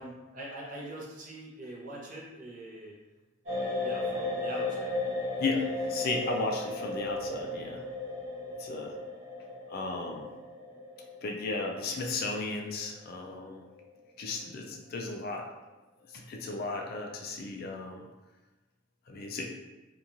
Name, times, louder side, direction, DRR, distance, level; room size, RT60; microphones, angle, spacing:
voice 1, 0.0-3.0 3.8-4.9, right 1 dB, 45° right, -3 dB, 0.6 m, -43 dB
sound 1, 3.5-13.4 13.6-13.8, left 2 dB, 65° right, 1.1 m, -35 dB
voice 2, 5.4-7.8 8.6-9.0 9.7-10.3 11.2-13.7 14.2-15.5 16.1-18.1 19.1-19.5, left 3 dB, 50° left, 2 dB, 0.3 m, -34 dB
2.9 x 2.3 x 2.5 m, 1.1 s
head